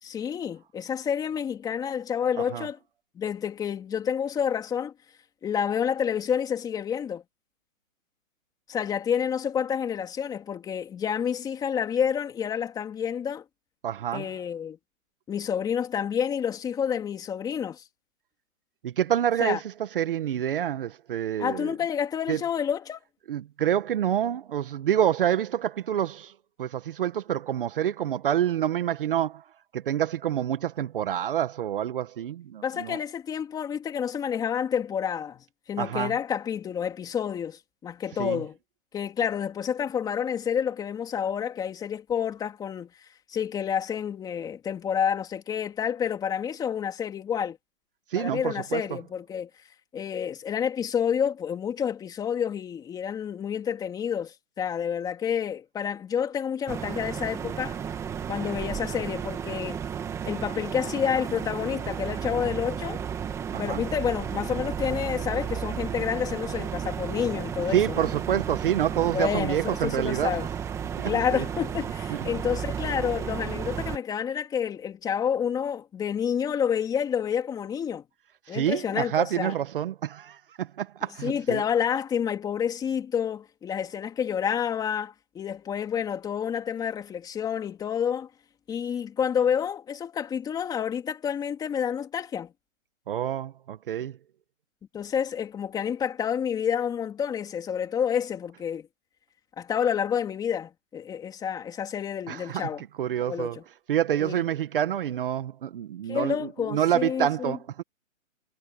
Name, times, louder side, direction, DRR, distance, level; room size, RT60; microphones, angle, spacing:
voice 1, 0.0-2.8 3.1-4.9 5.4-7.2 8.7-13.4 14.1-14.8 15.3-17.8 19.4-19.6 21.4-23.0 32.6-38.6 38.9-42.9 43.3-47.6 48.1-49.5 49.9-57.8 58.3-59.8 60.3-63.0 63.6-68.1 69.1-70.5 71.0-78.0 78.5-79.5 81.2-88.3 88.7-92.5 94.9-98.9 99.6-102.8 103.2-103.6 104.2-104.4 106.1-107.6, left 8 dB, 10° left, 2.9 m, -29 dB
voice 2, 13.8-14.2 18.8-19.6 19.9-21.7 22.3-22.4 23.3-26.3 26.6-29.4 29.7-33.0 35.8-36.1 38.2-38.4 48.1-48.8 63.5-63.8 67.7-70.5 71.0-71.4 72.1-72.2 78.5-81.6 93.1-94.2 102.3-103.6 103.9-107.8, right 10 dB, 40° right, 1.5 m, -27 dB
sound 1, 56.7-74.0, right 8 dB, 5° right, 1.5 m, -33 dB
hypercardioid pair, 160°, 42 cm